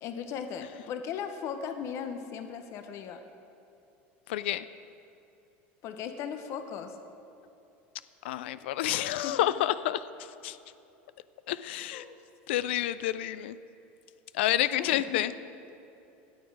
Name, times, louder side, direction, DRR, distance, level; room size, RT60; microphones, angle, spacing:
voice 1, 0.0-3.2 5.8-7.0 8.9-9.3 11.9-12.2 14.8-15.2, left 7 dB, 50° left, 8 dB, 0.8 m, -37 dB
voice 2, 4.3-4.6 8.2-10.1 10.4-10.6 11.5-12.0 12.5-13.6 14.3-15.3, left 13 dB, 85° left, 15 dB, 0.3 m, -29 dB
16.5 x 7.4 x 4.7 m, 2.8 s
supercardioid pair, 115°, 6 cm